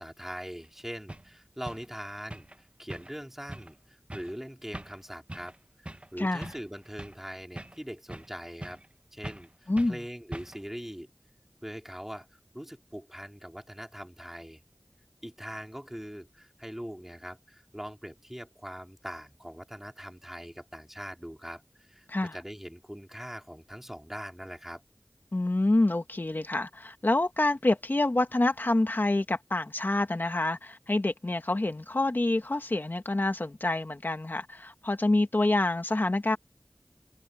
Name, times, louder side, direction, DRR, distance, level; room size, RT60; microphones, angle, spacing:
voice 1, 0.0-5.5 5.8-8.8 9.1-11.1 11.6-14.6 15.2-24.8, equal, 10° right, 3.0 m, -42 dB
sound 1, 0.6-0.7 1.1-1.3 1.7-1.9 2.3-2.6 2.9-3.2 3.5-3.7 4.1-4.4 4.7-5.0 5.3-5.6 5.9-6.1 6.4-7.2 7.6-8.3 8.6-8.9 9.2-9.5 9.8-10.0 10.3-10.7, right 1 dB, 30° right, 1.2 m, -42 dB
voice 2, 6.2-6.5 9.7-10.0 22.1-22.4 25.3-36.4, left 2 dB, 55° left, 1.9 m, -27 dB
wide cardioid pair, 40°, 4 cm